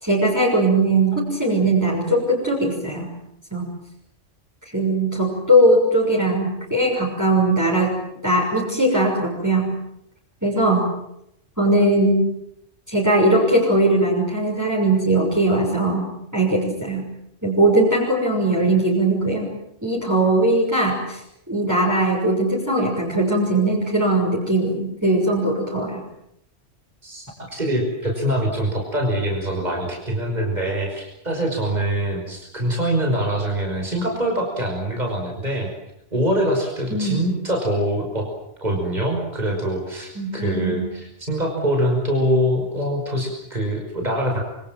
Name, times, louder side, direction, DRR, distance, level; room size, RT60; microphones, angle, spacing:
voice 1, 0.0-3.1 3.5-3.7 4.7-9.8 10.4-10.9 11.6-12.3 12.9-17.1 17.4-19.5 19.8-21.2 21.5-26.0 36.9-37.2 40.1-40.8, right 1 dB, 15° right, -4 dB, 6.2 m, -20 dB
voice 2, 27.0-35.7 36.1-38.3 38.6-44.4, right 1 dB, 35° right, 1 dB, 5.8 m, -24 dB
27.0 x 25.0 x 7.6 m, 0.79 s
omnidirectional pair, 1.2 m